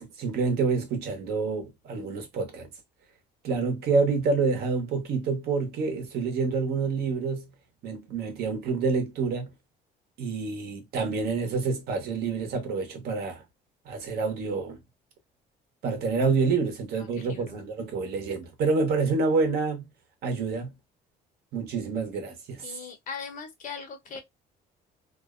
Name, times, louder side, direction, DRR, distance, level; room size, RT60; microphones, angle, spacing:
voice 1, 0.0-2.7 3.4-7.4 7.8-9.5 10.2-13.4 13.9-14.8 15.8-19.9 20.2-20.7 21.5-22.7, right 4 dB, 70° right, 1.0 m, -27 dB
voice 2, 17.0-17.6 22.6-24.2, left 6 dB, 50° left, 0.8 m, -40 dB
2.6 x 2.2 x 2.3 m
cardioid pair, 110°, 17 cm